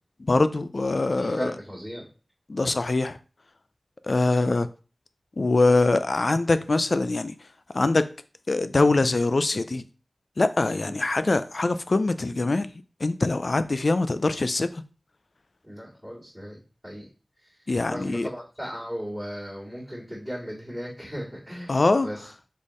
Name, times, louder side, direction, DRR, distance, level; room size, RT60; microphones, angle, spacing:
voice 1, 0.2-1.5 2.5-3.2 4.0-4.7 5.4-7.3 7.7-8.1 8.5-9.9 10.4-12.7 13.0-14.8 17.7-18.3 21.7-22.1, left 2 dB, 60° left, 0.3 m, -23 dB
voice 2, 1.1-2.1 10.7-11.0 15.6-17.1 17.4-22.3, equal, ahead, 2.1 m, -37 dB
4.3 x 3.5 x 3.1 m
wide cardioid pair, 60°, 0 cm